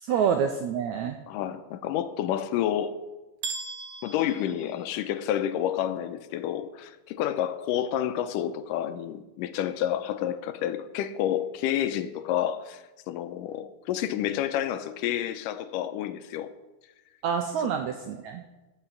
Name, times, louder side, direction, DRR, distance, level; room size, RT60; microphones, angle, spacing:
voice 1, 0.0-1.2 17.2-18.4, right 7 dB, 80° right, 1.7 m, -27 dB
voice 2, 1.3-3.0 4.0-16.5, left 11 dB, 80° left, 2.1 m, -29 dB
sound 1, 3.4-5.4, right 4 dB, 60° right, 1.6 m, -39 dB
14.5 x 5.8 x 5.9 m
omnidirectional pair, 4.0 m